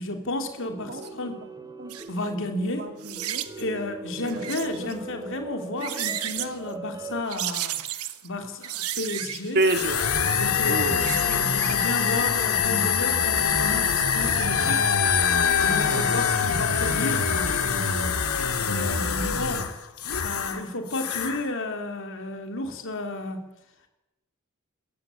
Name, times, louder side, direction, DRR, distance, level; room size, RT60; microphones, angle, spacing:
voice 1, 0.0-1.5 2.1-2.9 3.6-7.8 8.2-9.6 10.4-14.9 15.6-18.4 18.7-19.7 20.2-23.5, left 2 dB, 60° left, 5 dB, 3.3 m, -32 dB
sound 1, 0.6-7.2, right 2 dB, 20° right, 2.2 m, -40 dB
voice 2, 0.9-1.3 1.8-2.0 2.8-3.4 4.2-4.5 4.8-5.0 9.5-10.0 10.7-11.1 15.9-16.2, right 2 dB, 50° right, 6 dB, 2.3 m, -28 dB
Rubber Skid, 1.9-2.1 3.0-3.6 4.3-4.9 5.6-6.5 7.3-8.3 8.6-10.0 10.7-11.8 12.1-12.2, right 12 dB, 85° right, 1.3 m, -33 dB
sound 2, 9.6-20.6 20.9-21.4, left 6 dB, 85° left, 2.0 m, -24 dB
21.5 x 15.0 x 8.7 m, 0.94 s
head